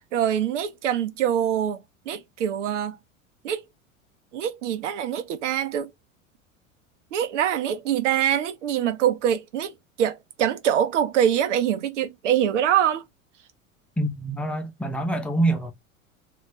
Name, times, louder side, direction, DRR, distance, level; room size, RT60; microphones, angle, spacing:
voice 1, 0.1-1.8 2.1-3.0 3.4-3.6 4.3-5.9 7.1-13.0, right 10 dB, 60° right, 0.6 m, -24 dB
voice 2, 14.0-15.7, right 2 dB, 5° left, 0.5 m, -25 dB
2.4 x 2.3 x 3.4 m
figure-of-eight pair, 80°, 41 cm